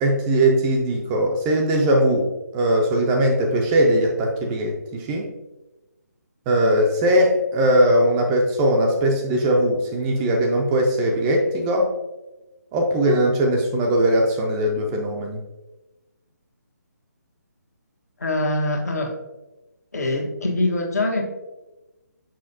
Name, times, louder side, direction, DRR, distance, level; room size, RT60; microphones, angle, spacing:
voice 1, 0.0-5.3 6.5-11.9 12.7-15.4, right 1 dB, 15° right, 1 dB, 0.4 m, -20 dB
voice 2, 18.2-19.1 19.9-21.2, left 2 dB, 60° left, 1 dB, 1.3 m, -23 dB
6.4 x 5.5 x 2.7 m, 1.1 s
figure-of-eight pair, 145°, 10 cm